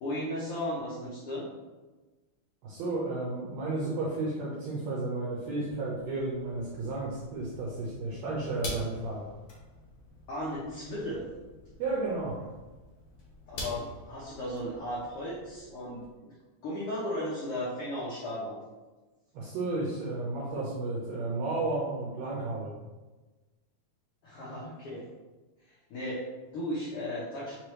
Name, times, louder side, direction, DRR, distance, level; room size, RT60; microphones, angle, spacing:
voice 1, 0.0-1.5 10.3-11.3 13.5-16.4 16.6-18.6 24.2-25.1 25.6-26.3 26.5-27.6, left 1 dB, 85° left, -6 dB, 1.3 m, -35 dB
voice 2, 2.6-9.3 11.8-12.4 19.3-22.7, right 2 dB, 75° right, -5 dB, 1.7 m, -33 dB
sound 1, 5.7-16.1, left 1 dB, 65° left, 1.6 m, -46 dB
4.7 x 3.2 x 3.0 m, 1.2 s
omnidirectional pair, 3.6 m